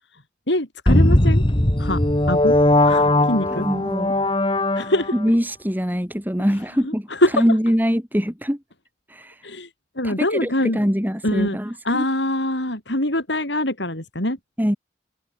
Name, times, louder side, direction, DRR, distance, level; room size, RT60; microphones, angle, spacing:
voice 1, 0.5-1.4 1.8-2.0 2.3-2.6 2.8-3.7 4.7-5.2 6.5-7.5 9.4-9.7 10.0-10.8 11.2-11.6 11.8-14.4, left 1 dB, 75° left, 7.5 m, -24 dB
sound 1, 0.9-5.3, left 1 dB, 25° left, 1.6 m, -18 dB
voice 2, 3.5-4.1 5.1-7.1 7.3-8.6 9.1-9.4 10.0-12.0 14.6-14.8, equal, 10° right, 4.9 m, -23 dB
head